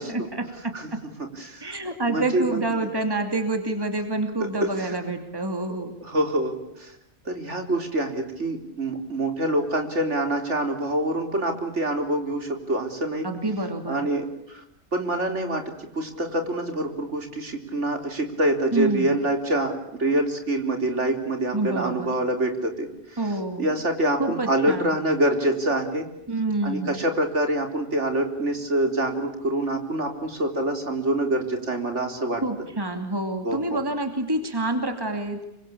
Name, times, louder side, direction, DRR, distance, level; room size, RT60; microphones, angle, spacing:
voice 1, 0.1-1.0 1.6-5.9 13.2-14.0 18.7-19.1 21.5-22.1 23.2-23.7 24.2-25.0 26.3-27.0 32.4-35.4, right 2 dB, 20° right, 6 dB, 2.7 m, -27 dB
voice 2, 1.2-1.7 2.1-2.6 4.6-5.0 6.0-6.9 7.3-13.3 13.9-14.6 14.9-15.6 15.9-23.2 23.6-26.1 26.6-32.4 33.4-33.8, right 1 dB, 85° right, 5 dB, 4.3 m, -26 dB
27.0 x 24.5 x 8.7 m, 0.80 s
omnidirectional pair, 1.2 m